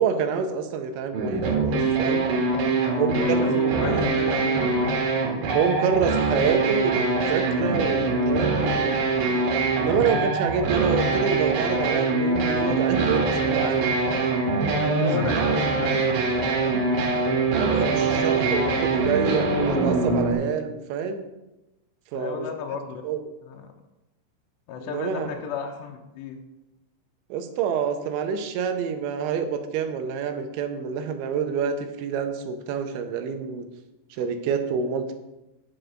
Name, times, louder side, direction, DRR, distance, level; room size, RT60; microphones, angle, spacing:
voice 1, 0.0-2.3 3.0-3.5 5.5-8.9 9.8-13.9 15.0-15.1 15.4-15.5 17.5-21.3 22.1-22.5 23.0-23.2 24.8-25.3 27.3-33.7 34.1-35.1, right 6 dB, 80° right, 7 dB, 3.1 m, -27 dB
sound 1, 1.1-20.3, right 3 dB, 60° right, 2.8 m, -23 dB
voice 2, 2.7-5.0 9.8-10.4 14.8-17.4 22.1-23.0 23.5-23.6 24.7-26.4, left 7 dB, 80° left, 1 dB, 2.8 m, -34 dB
9.4 x 7.9 x 5.1 m, 0.99 s
omnidirectional pair, 5.4 m